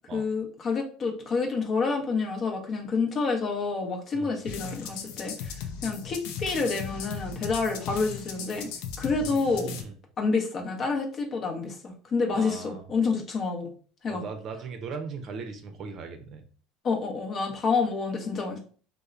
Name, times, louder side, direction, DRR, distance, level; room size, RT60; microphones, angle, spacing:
voice 1, 0.1-5.6 5.8-8.7 9.0-9.7 10.2-13.7 14.0-14.2 16.8-18.6, left 4 dB, 40° left, 2 dB, 0.7 m, -28 dB
sound 1, 4.4-9.8, left 7 dB, 70° left, 0.4 m, -37 dB
voice 2, 9.2-9.9 12.3-12.8 14.1-16.5, right 5 dB, 50° right, 6 dB, 0.5 m, -38 dB
2.9 x 2.1 x 2.4 m, 0.41 s
supercardioid pair, 90°, 0 cm